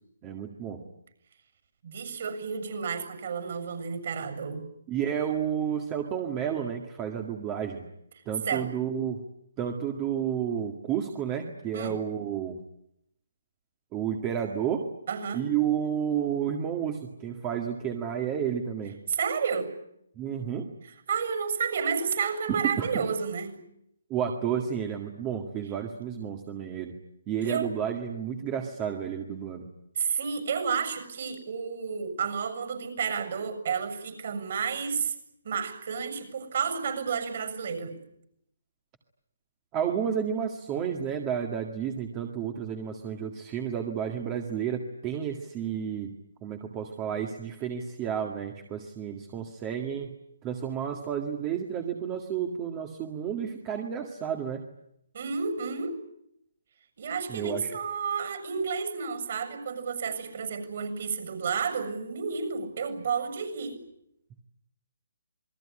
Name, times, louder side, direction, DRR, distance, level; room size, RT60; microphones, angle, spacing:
voice 1, 0.2-0.8 4.9-7.8 8.3-9.2 9.6-12.6 13.9-14.9 15.3-19.0 20.2-20.6 22.5-22.9 24.1-26.9 27.3-29.7 39.7-46.1 46.4-50.1 50.4-54.7 57.3-57.7, right 8 dB, 20° right, 4 dB, 1.9 m, -31 dB
voice 2, 1.8-4.7 8.4-8.7 11.7-12.0 15.1-15.5 19.1-19.7 20.8-23.6 27.4-27.7 30.0-35.1 35.4-38.0 55.1-56.0 57.0-63.8, right 6 dB, 50° right, 8 dB, 6.9 m, -31 dB
28.0 x 21.0 x 10.0 m, 0.78 s
hypercardioid pair, 165°, 0 cm